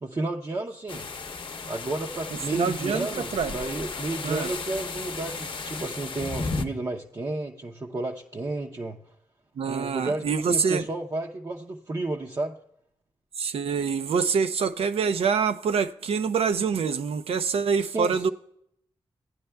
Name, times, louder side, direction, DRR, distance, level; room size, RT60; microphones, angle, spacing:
voice 1, 0.0-1.1 1.7-9.0 9.7-12.6 17.9-18.3, right 2 dB, 35° right, 0.6 m, -32 dB
sound 1, 0.9-6.6, left 4 dB, 55° left, 0.7 m, -34 dB
voice 2, 2.5-3.6 4.2-4.5 9.6-10.8 13.4-18.3, right 6 dB, 80° right, 0.5 m, -25 dB
15.5 x 9.3 x 2.2 m
cardioid pair, 70°, 10 cm